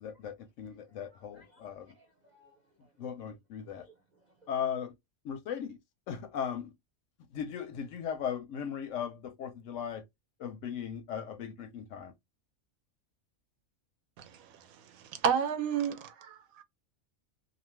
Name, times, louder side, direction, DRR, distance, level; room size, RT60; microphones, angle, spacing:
voice 1, 0.0-1.9 3.0-3.8 4.5-4.9 5.2-5.8 6.1-6.7 7.3-10.0 10.4-12.1, left 8 dB, 70° left, 0.8 m, -37 dB
voice 2, 0.9-2.9 3.7-4.5, right 1 dB, 50° right, 0.5 m, -64 dB
voice 3, 15.2-16.6, right 7 dB, 75° right, 1.0 m, -30 dB
2.6 x 2.4 x 3.0 m
omnidirectional pair, 1.5 m